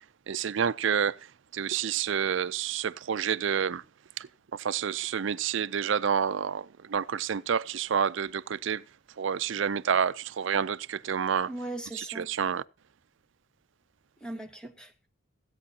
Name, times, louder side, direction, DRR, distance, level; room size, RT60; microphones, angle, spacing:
voice 1, 0.3-1.2 1.5-3.8 4.2-8.8 9.2-11.5 11.9-12.6, right 7 dB, 65° right, 0.5 m, -29 dB
voice 2, 11.5-12.3 14.2-15.1, right 1 dB, 5° left, 1.2 m, -39 dB
16.5 x 8.4 x 2.8 m
head